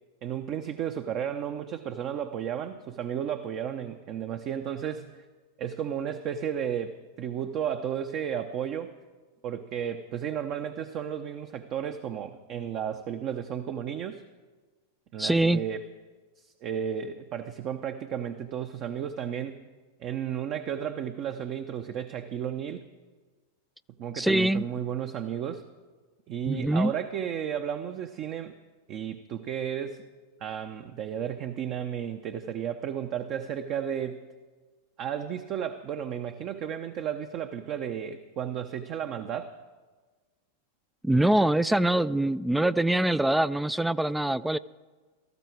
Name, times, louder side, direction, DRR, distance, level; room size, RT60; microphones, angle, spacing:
voice 1, 0.2-5.1 5.6-8.9 9.4-14.2 15.1-15.9 16.4-19.6 20.0-22.8 24.0-25.6 26.3-28.5 28.9-30.0 30.4-34.3 35.0-39.6, right 9 dB, 45° right, 7 dB, 0.8 m, -33 dB
voice 2, 15.2-15.6 24.1-24.6 26.4-26.9 41.0-44.6, right 1 dB, 5° right, 15 dB, 0.3 m, -24 dB
18.0 x 14.0 x 4.6 m, 1.4 s
hypercardioid pair, 95°, 0 cm